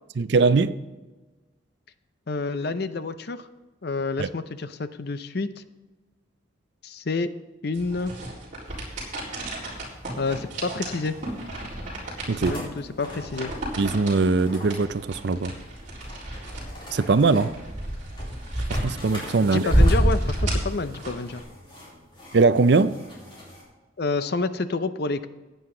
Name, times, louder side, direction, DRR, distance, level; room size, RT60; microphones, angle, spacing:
voice 1, 0.2-0.8 4.2-4.3 12.3-12.5 13.8-15.5 16.9-17.5 18.7-19.6 22.3-23.0, right 4 dB, 55° right, 0.5 m, -21 dB
voice 2, 2.3-3.5 3.8-5.5 6.8-7.3 7.6-8.1 10.2-11.2 12.4-13.5 19.4-21.4 24.0-25.3, left 3 dB, 50° left, 0.6 m, -28 dB
sound 1, 7.7-21.4, right 1 dB, 40° right, 4.0 m, -28 dB
sound 2, 8.7-23.6, left 1 dB, 25° left, 4.0 m, -44 dB
15.5 x 9.2 x 3.8 m
head